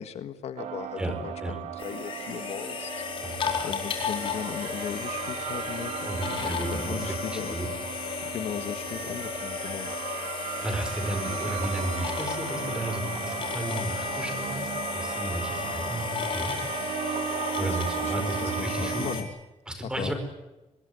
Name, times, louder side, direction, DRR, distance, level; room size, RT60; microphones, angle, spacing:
voice 1, 0.0-2.9 3.3-5.9 6.7-7.6 8.2-9.9 17.6-19.3 19.8-20.1, left 9 dB, 65° left, 10 dB, 1.6 m, -37 dB
sound 1, 0.6-19.2, right 10 dB, 90° right, 1.8 m, -36 dB
sound 2, 1.8-19.2, left 6 dB, 50° left, 4.6 m, -34 dB
voice 2, 3.2-3.7 6.0-7.2 7.5-7.7 10.6-14.7 14.9-16.6 17.6-19.1 19.7-20.1, right 1 dB, 5° right, 7 dB, 5.1 m, -33 dB
25.5 x 20.5 x 9.6 m, 1.1 s
wide cardioid pair, 170°, 12 cm